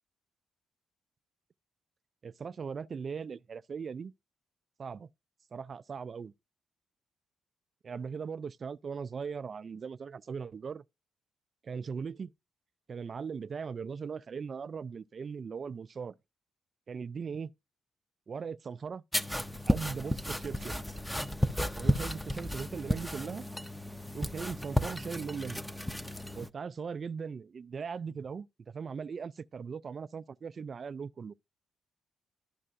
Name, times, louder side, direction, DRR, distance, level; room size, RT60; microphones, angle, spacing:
voice 1, 2.2-4.1 4.8-5.1 5.5-6.3 7.8-10.8 11.6-12.3 12.9-16.1 16.9-17.5 18.3-19.0 19.7-20.8 21.8-23.5 24.1-25.6 26.3-31.3, right 6 dB, 50° right, 0.3 m, -39 dB
sound 1, 19.1-26.5, left 1 dB, 5° left, 0.5 m, -33 dB
12.0 x 5.5 x 2.5 m
supercardioid pair, 60°, 0 cm